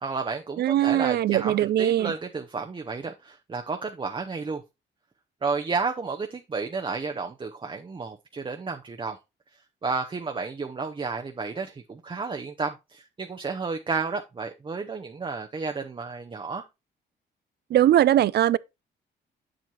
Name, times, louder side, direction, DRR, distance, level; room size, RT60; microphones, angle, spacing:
voice 1, 0.0-4.6 5.4-9.2 9.8-16.6, right 4 dB, 25° right, 0.7 m, -32 dB
voice 2, 0.6-2.1 17.7-18.6, right 12 dB, 55° right, 0.4 m, -21 dB
7.7 x 7.5 x 2.9 m
cardioid pair, 90°, 20 cm